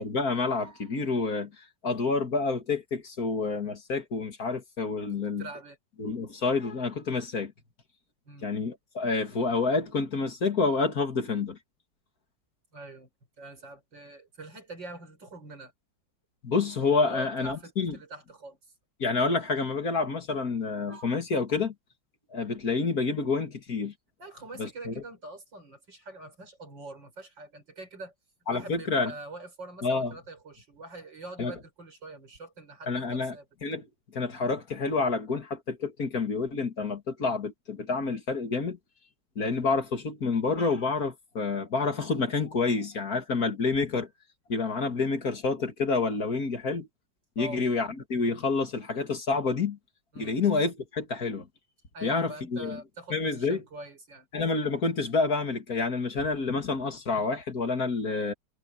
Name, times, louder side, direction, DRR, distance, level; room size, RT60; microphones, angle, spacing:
voice 1, 0.0-5.5 6.0-7.5 8.4-11.6 16.4-18.0 19.0-21.7 22.3-23.9 24.6-24.9 28.5-29.1 29.8-30.1 31.4-31.5 32.9-33.3 33.6-33.9 34.1-38.8 39.4-44.1 44.5-46.9 47.4-49.8 50.2-51.5 52.0-52.8 53.1-53.6 54.3-58.3, left 4 dB, 55° left, 2.6 m, -28 dB
voice 2, 5.4-5.8 8.2-8.5 12.7-13.1 13.4-15.7 17.0-18.7 24.2-28.1 28.5-33.5 47.4-47.6 50.1-50.4 51.9-54.3, right 2 dB, 75° right, 6.6 m, -44 dB
omnidirectional pair, 2.0 m